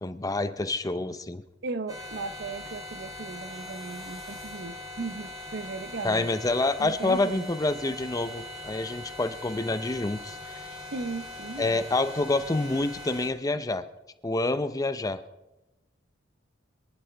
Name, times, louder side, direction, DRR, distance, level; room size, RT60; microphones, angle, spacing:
voice 1, 0.0-1.4 6.0-10.7 11.6-13.8 14.2-15.2, left 2 dB, 20° left, 11 dB, 0.6 m, -27 dB
voice 2, 1.6-6.3 6.8-7.5 10.9-11.8 13.5-13.6, right 3 dB, 60° right, 12 dB, 0.7 m, -37 dB
sound 1, 1.9-13.3, left 1 dB, 20° right, 3.1 m, -41 dB
25.5 x 11.0 x 3.4 m, 0.99 s
head